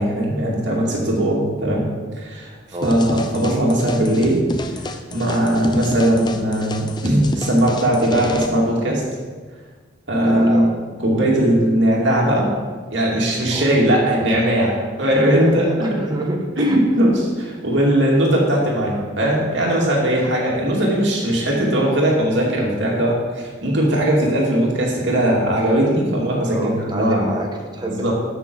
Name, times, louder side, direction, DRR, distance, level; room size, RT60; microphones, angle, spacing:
voice 1, 0.0-1.9 2.1-2.5 2.8-4.4 4.7-9.0 10.1-10.7 11.0-12.5 12.9-16.0 16.6-27.3 27.9-28.1, right 1 dB, 70° right, -3 dB, 2.5 m, -19 dB
sound 1, 2.8-8.5, left 2 dB, 20° left, 0.5 m, -30 dB
voice 2, 10.2-10.7 13.5-13.8 15.4-16.9 19.7-20.0 26.5-28.1, right 1 dB, 20° right, 1 dB, 1.2 m, -28 dB
12.5 x 6.4 x 4.7 m, 1.5 s
head